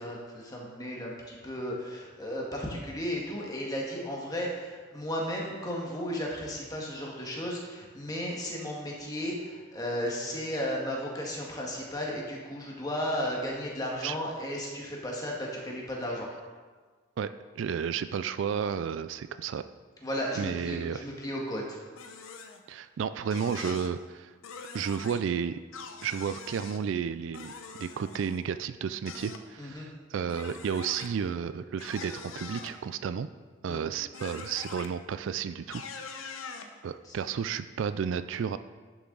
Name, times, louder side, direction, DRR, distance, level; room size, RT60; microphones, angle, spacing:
voice 1, 0.0-16.3 20.0-21.8 29.6-29.9 33.7-33.8 37.0-37.1, equal, 20° left, -2 dB, 1.6 m, -34 dB
voice 2, 17.6-19.6 20.4-21.1 22.7-24.3 24.7-25.6 26.0-27.5 27.8-33.3 33.6-35.9 36.8-38.6, right 7 dB, 65° right, 12 dB, 0.3 m, -32 dB
sound 1, 22.0-22.6 23.3-23.9 24.4-25.2 25.7-26.8 27.3-28.4 29.0-29.4 30.3-31.1 31.8-32.7 34.1-34.9 35.7-36.7, left 5 dB, 80° left, 0.8 m, -43 dB
11.0 x 6.9 x 3.9 m, 1.4 s
head